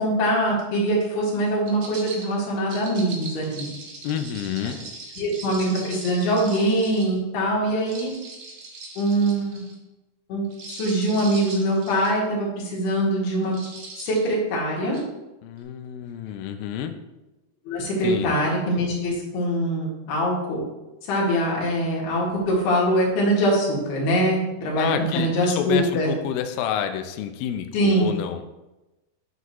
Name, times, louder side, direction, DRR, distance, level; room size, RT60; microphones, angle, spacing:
voice 1, 0.0-3.7 5.2-8.1 9.0-9.6 10.3-13.5 14.0-15.0 17.7-20.6 21.1-26.1 27.7-28.1, right 1 dB, 70° left, -4 dB, 3.8 m, -23 dB
sound 1, 1.6-7.2 7.8-9.7 10.4-12.2 12.7-12.9 13.4-14.3 14.9-15.0, right 3 dB, 85° right, 1.2 m, -40 dB
voice 2, 4.0-4.8 15.4-16.9 18.0-18.4 24.7-28.4, left 9 dB, 90° left, 7 dB, 2.0 m, -29 dB
8.1 x 7.7 x 3.1 m, 1.0 s
omnidirectional pair, 4.9 m